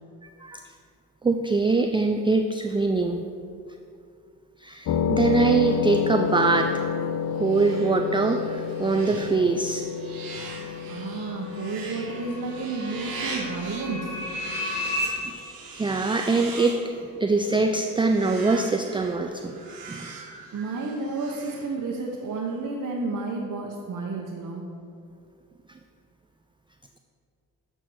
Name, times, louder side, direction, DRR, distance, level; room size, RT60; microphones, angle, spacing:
voice 1, 0.2-0.6 1.2-3.2 4.6-6.8 7.4-9.8 14.8-15.4 15.7-16.8 17.2-19.5 19.9-20.1, right 3 dB, 15° right, 5 dB, 0.3 m, -23 dB
sound 1, 4.9-15.1, left 7 dB, 55° left, 0.5 m, -30 dB
sound 2, 6.3-22.2, right 4 dB, 75° right, 1.3 m, -41 dB
sound 3, 10.8-15.1, left 1 dB, 15° left, 1.6 m, -34 dB
voice 2, 10.9-14.2 20.5-24.6, right 3 dB, 55° right, -2 dB, 0.9 m, -31 dB
7.8 x 4.5 x 4.6 m, 2.4 s
supercardioid pair, 55°, 37 cm